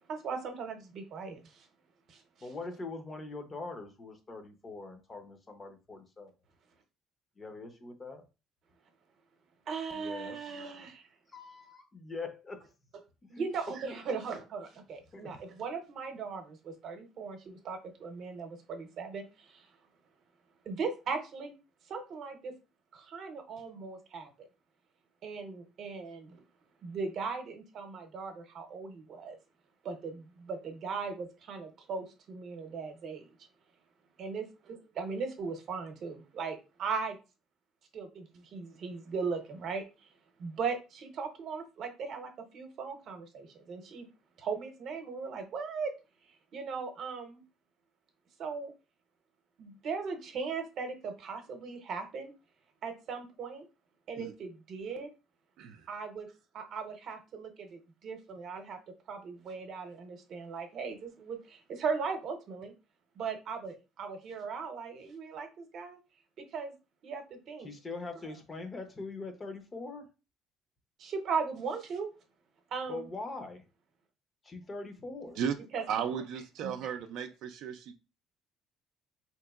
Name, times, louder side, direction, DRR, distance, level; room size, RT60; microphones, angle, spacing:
voice 1, 0.1-1.7 2.1-2.5 9.7-11.1 13.3-19.7 20.6-21.5 21.9-22.6 22.9-24.5 25.2-26.4 26.8-29.4 29.8-33.3 34.2-37.2 37.9-39.8 40.4-44.1 44.4-45.9 46.5-47.4 48.4-48.7 49.6-52.3 52.8-53.7 54.1-55.1 55.9-58.8 59.1-62.7 63.2-66.0 66.5-66.7 67.0-67.7 71.0-72.1 72.7-73.1 75.7-75.9 76.6-76.7, right 5 dB, 50° right, 0.8 m, -38 dB
voice 2, 2.4-6.3 7.4-8.2 9.9-10.4 11.3-12.6 13.3-13.4 15.1-15.3 67.6-70.1 72.9-73.6 74.4-75.4, left 3 dB, 25° left, 0.6 m, -42 dB
voice 3, 75.9-77.9, right 8 dB, 70° right, 0.4 m, -35 dB
3.5 x 2.9 x 2.3 m
cardioid pair, 130°, 0 cm